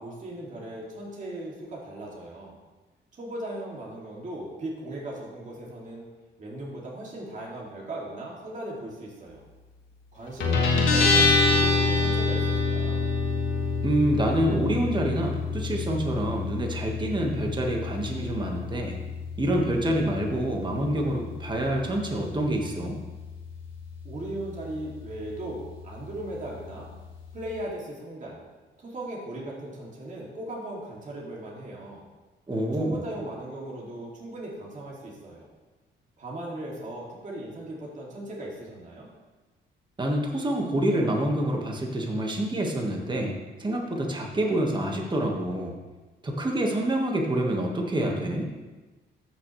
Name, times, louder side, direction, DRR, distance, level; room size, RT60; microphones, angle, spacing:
voice 1, 0.0-2.5 3.1-6.1 6.4-9.4 10.1-13.0 24.0-26.9 27.3-28.4 28.8-32.1 32.8-35.5 36.2-39.1, right 1 dB, 40° right, -4 dB, 2.5 m, -38 dB
Guitar, 10.4-27.6, left 3 dB, 75° left, 2.1 m, -28 dB
voice 2, 13.8-19.0 19.4-23.0 32.5-33.0 40.0-45.8 46.2-48.5, right 1 dB, 25° right, 1 dB, 1.5 m, -27 dB
13.5 x 6.3 x 3.2 m, 1.2 s
cardioid pair, 90°, 20 cm